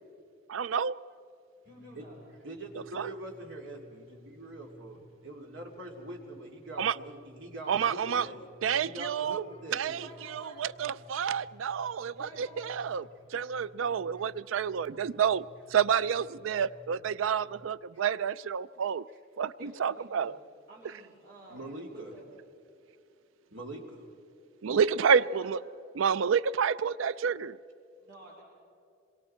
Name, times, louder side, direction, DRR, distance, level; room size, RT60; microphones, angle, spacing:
voice 1, 0.5-0.9 2.9-3.1 6.8-7.0 7.7-8.3 8.6-9.4 9.7-10.1 10.3-13.0 13.3-19.0 19.4-20.3 24.6-25.6 26.0-27.6, right 7 dB, 90° right, 18 dB, 0.4 m, -29 dB
sound 1, 1.6-17.7, equal, 30° left, 2.7 m, -57 dB
voice 2, 1.6-2.2 8.1-8.3 10.0-10.6 12.1-12.7 19.6-20.3 20.7-21.7 21.9-22.2 24.7-25.6 28.0-28.4, equal, 55° right, -4 dB, 4.0 m, -50 dB
voice 3, 2.4-8.3 8.8-10.0 21.5-22.1 23.5-24.1, right 2 dB, 70° right, 0 dB, 3.0 m, -43 dB
27.0 x 22.5 x 4.4 m, 2.5 s
head